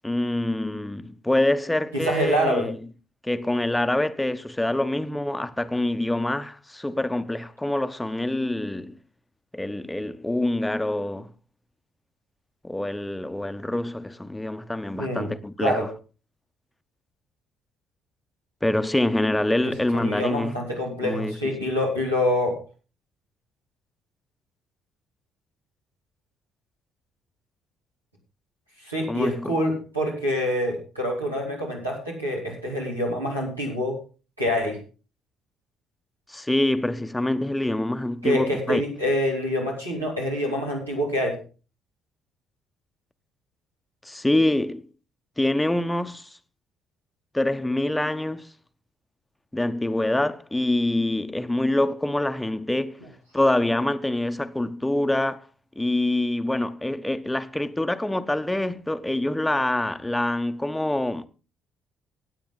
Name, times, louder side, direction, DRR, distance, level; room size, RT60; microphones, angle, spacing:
voice 1, 0.0-2.8 3.2-9.0 9.5-11.3 12.6-15.9 18.6-20.5 21.0-21.7 29.1-29.6 36.3-38.8 44.0-44.9 45.4-46.4 47.3-48.5 49.5-53.0 53.3-55.5 55.8-61.3, left 1 dB, 10° left, 0.9 m, -25 dB
voice 2, 1.9-2.7 15.0-15.3 15.6-15.9 19.9-22.6 28.8-34.0 34.4-34.8 38.2-41.4, equal, 90° right, 3.6 m, -26 dB
17.0 x 8.8 x 4.0 m
figure-of-eight pair, 45°, 0 cm